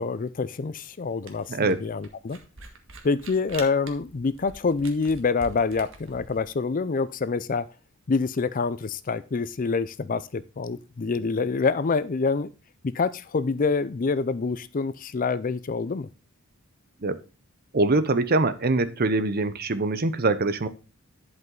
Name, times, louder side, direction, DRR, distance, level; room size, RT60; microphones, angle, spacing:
voice 1, 0.0-2.4 3.0-7.6 8.1-12.5 12.8-16.1, left 4 dB, 40° left, 0.4 m, -26 dB
Camera, 1.3-6.4, right 3 dB, 60° right, 1.6 m, -44 dB
voice 2, 17.7-20.7, right 2 dB, 45° right, 0.7 m, -23 dB
10.5 x 5.5 x 3.8 m
head